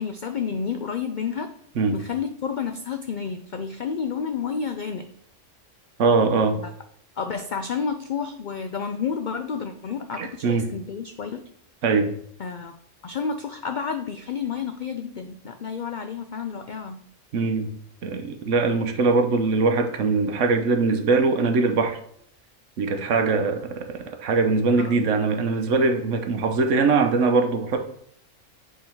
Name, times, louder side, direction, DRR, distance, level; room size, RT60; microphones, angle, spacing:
voice 1, 0.0-1.5 1.9-5.1 6.6-6.7 7.2-11.4 12.4-12.7 13.0-17.0 24.8-25.1, left 6 dB, 75° left, 7 dB, 0.4 m, -30 dB
voice 2, 6.0-6.6 10.2-10.7 11.8-12.1 17.3-17.7 18.0-22.0 22.8-27.8, right 4 dB, 65° right, 6 dB, 1.2 m, -22 dB
7.6 x 3.9 x 4.5 m, 0.66 s
omnidirectional pair, 1.4 m